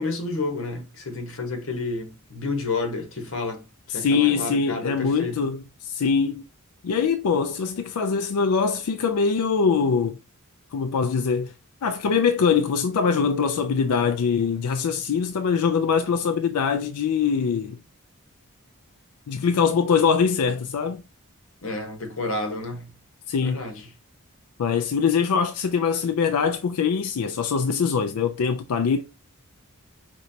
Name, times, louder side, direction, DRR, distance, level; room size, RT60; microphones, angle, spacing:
voice 1, 0.0-5.4 21.6-23.0 23.4-23.9, left 3 dB, 60° left, 1.1 m, -30 dB
voice 2, 3.9-6.4 6.8-10.2 10.7-11.5 11.8-17.8 19.3-21.0 23.3-23.6 24.6-29.0, left 6 dB, 85° left, 0.4 m, -23 dB
5.1 x 3.1 x 2.7 m
head